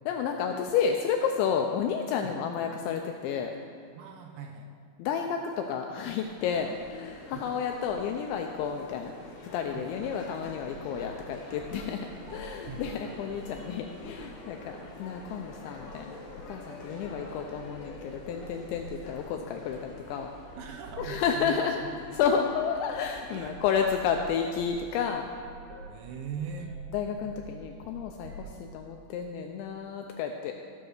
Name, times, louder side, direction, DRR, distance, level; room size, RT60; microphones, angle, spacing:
voice 1, 0.1-3.5 5.0-9.1 9.4-16.2 16.5-20.3 21.0-21.8 22.1-25.3 26.9-30.6, left 7 dB, 85° left, 3 dB, 2.6 m, -31 dB
voice 2, 4.0-4.7 7.3-7.5 9.7-10.0 12.7-12.9 17.0-17.1 20.6-22.0 23.3-23.7 25.9-26.8 28.4-28.5, right 7 dB, 80° right, 4 dB, 2.8 m, -41 dB
sound 1, 5.9-23.7, left 2 dB, 55° left, 1.9 m, -47 dB
sound 2, 9.9-11.2 11.6-11.9 12.2-13.6 14.0-14.2 14.6-14.8 15.2-15.4 15.8-16.0 16.3-21.5 21.9-22.1 22.4-22.7 22.9-23.2 23.4-28.5, right 2 dB, 55° right, 2.3 m, -47 dB
15.0 x 5.9 x 6.5 m, 2.5 s
omnidirectional pair, 5.7 m